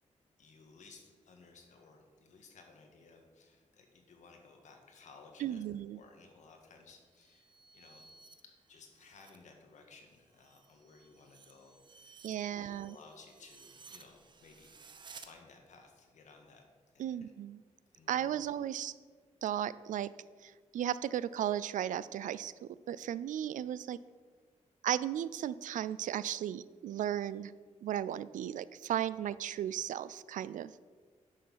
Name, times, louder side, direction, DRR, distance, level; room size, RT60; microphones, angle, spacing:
voice 1, 0.4-5.6 5.9-8.0 8.7-14.8 15.1-16.7 16.9-17.3 17.9-18.5 29.1-29.2, left 4 dB, 70° left, 3 dB, 1.7 m, -58 dB
voice 2, 5.4-6.0 12.2-12.9 17.0-17.6 18.1-18.9 19.4-20.1 20.4-22.5 22.9-24.0 24.8-27.5 27.8-30.7, right 11 dB, 90° right, 18 dB, 0.4 m, -35 dB
sound 1, 7.0-9.4 9.8-15.3, right 5 dB, 35° right, 0.7 m, -57 dB
11.0 x 6.4 x 5.6 m, 1.5 s
wide cardioid pair, 175°, 13 cm